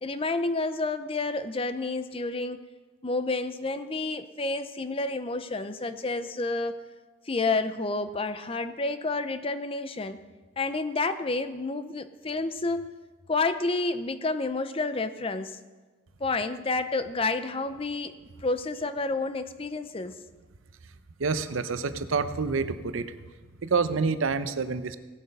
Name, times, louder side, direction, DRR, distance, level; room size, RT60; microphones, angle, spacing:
voice 1, 0.0-2.7 3.0-6.8 7.3-10.2 10.6-12.8 13.3-15.6 16.2-18.1 18.4-20.2, left 3 dB, 30° left, 11 dB, 0.5 m, -29 dB
voice 2, 21.2-23.2 23.6-25.0, right 4 dB, 90° right, 12 dB, 0.7 m, -27 dB
17.0 x 8.1 x 5.3 m, 1.3 s
head